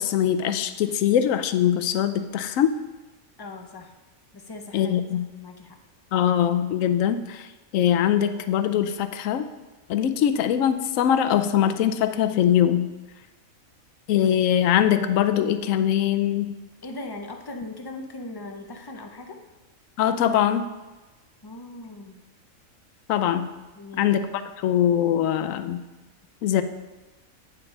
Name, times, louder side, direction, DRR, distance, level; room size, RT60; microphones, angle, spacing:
voice 1, 0.0-2.7 4.7-5.2 6.1-7.5 7.7-9.5 9.9-12.9 14.1-16.6 20.0-20.7 23.1-23.5 24.0-24.3 24.6-25.8 26.4-26.6, left 10 dB, 70° left, 10 dB, 0.9 m, -22 dB
voice 2, 3.4-3.9 4.3-5.0 5.4-5.8 16.8-19.4 21.4-22.2 23.8-24.1, left 2 dB, 30° left, 4 dB, 0.4 m, -39 dB
8.7 x 4.5 x 5.3 m, 1.2 s
omnidirectional pair, 1.5 m